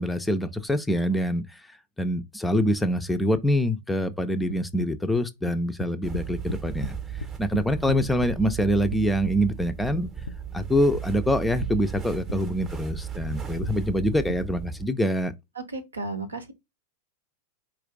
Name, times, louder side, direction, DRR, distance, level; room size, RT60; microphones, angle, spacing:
voice 1, 0.0-1.4 2.0-7.0 7.4-10.1 10.5-15.3, equal, 5° left, 0.4 m, -25 dB
sound 1, 4.5-6.9 7.2-9.0 9.3-10.4 10.6-11.7 12.0-12.4 12.6-14.4, left 3 dB, 75° left, 0.3 m, -36 dB
Rustling Pillow Sequence, 6.0-14.9, right 8 dB, 25° right, 0.7 m, -36 dB
voice 2, 15.6-16.5, right 3 dB, 75° right, 0.8 m, -34 dB
4.4 x 2.4 x 3.8 m
figure-of-eight pair, 90°, 0 cm